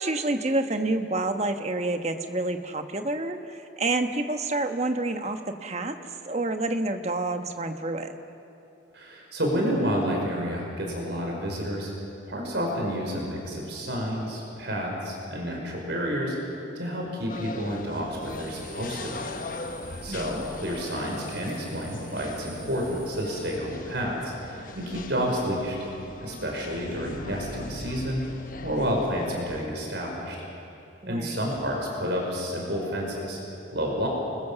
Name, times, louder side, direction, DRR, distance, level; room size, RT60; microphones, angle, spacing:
voice 1, 0.0-6.0 6.3-8.1 20.1-20.4 31.0-31.4, right 2 dB, 35° right, 7 dB, 1.3 m, -28 dB
voice 2, 8.9-11.9 12.3-16.3 16.8-19.3 20.0-25.8 26.2-28.2 28.6-30.4 31.1-33.4 33.7-34.1, equal, 60° right, 0 dB, 5.5 m, -30 dB
sound 1, 17.3-29.7, left 2 dB, 45° left, 1.1 m, -40 dB
sound 2, 18.2-23.5, right 4 dB, 85° right, 6.3 m, -47 dB
29.5 x 22.0 x 7.0 m, 2.9 s
head